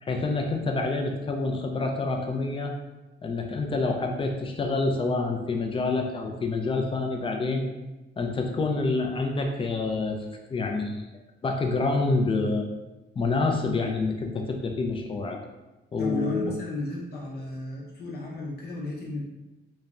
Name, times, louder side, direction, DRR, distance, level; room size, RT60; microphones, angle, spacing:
voice 1, 0.0-2.7 3.2-7.6 8.2-10.2 10.5-11.1 11.4-12.7 13.2-15.4 15.9-16.5, left 3 dB, 25° left, 2 dB, 0.4 m, -27 dB
voice 2, 16.0-19.2, left 1 dB, 55° left, -3 dB, 0.8 m, -34 dB
3.1 x 2.1 x 2.5 m, 1.1 s
cardioid pair, 90°, 20 cm